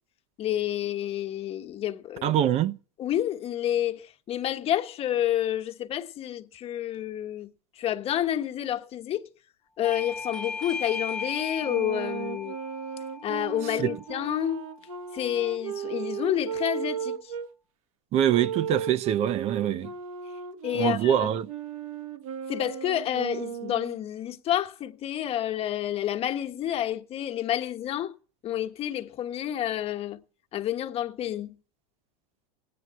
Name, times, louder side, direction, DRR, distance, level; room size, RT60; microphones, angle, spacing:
voice 1, 0.4-2.3 3.0-9.3 9.8-12.5 13.2-14.6 15.1-17.3 20.6-21.3 22.5-28.1 28.4-30.2 30.5-31.6, left 11 dB, 35° left, 1.3 m, -29 dB
voice 2, 2.2-2.8 13.8-13.9 18.1-19.9 20.7-21.5, right 10 dB, 40° right, 0.8 m, -24 dB
Bell / Doorbell, 9.8-15.0, left 4 dB, 5° left, 0.9 m, -37 dB
Wind instrument woodwind instrument, 11.6-17.5 18.3-24.0, right 8 dB, 75° right, 1.5 m, -36 dB
16.5 x 9.7 x 7.5 m
supercardioid pair, 125°, 17 cm